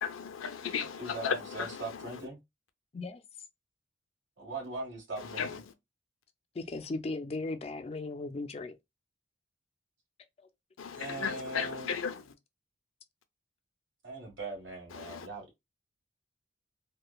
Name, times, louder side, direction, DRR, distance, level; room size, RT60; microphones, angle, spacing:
voice 1, 0.0-2.2 5.2-5.6 10.8-12.3 14.9-15.3, left 6 dB, 85° left, 0.5 m, -36 dB
voice 2, 1.0-2.4 4.4-5.5 10.9-11.9 14.0-15.6, right 2 dB, 65° right, 1.5 m, -40 dB
voice 3, 6.5-8.7 10.4-10.5, left 3 dB, 30° left, 0.3 m, -37 dB
3.1 x 2.2 x 2.3 m
head